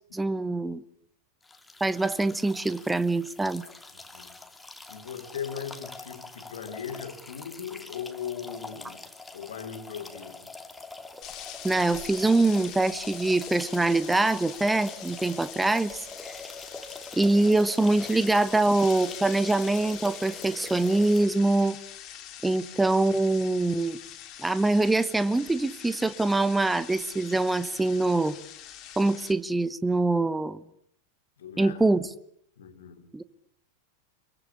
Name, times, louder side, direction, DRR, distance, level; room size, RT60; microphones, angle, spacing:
voice 1, 0.1-0.8 1.8-3.6 11.6-16.0 17.2-21.8 22.4-24.0 24.4-28.4 29.0-30.6 31.6-32.1 33.1-33.2, right 2 dB, 5° right, 1.0 m, -24 dB
sound 1, 1.4-21.2, left 3 dB, 10° left, 2.7 m, -44 dB
voice 2, 3.9-4.4 4.9-9.0 9.3-10.5 31.4-31.8 32.6-33.2, left 8 dB, 60° left, 3.2 m, -39 dB
sound 2, 11.2-29.3, left 11 dB, 35° left, 3.2 m, -44 dB
26.0 x 23.0 x 8.5 m
figure-of-eight pair, 90°, 0 cm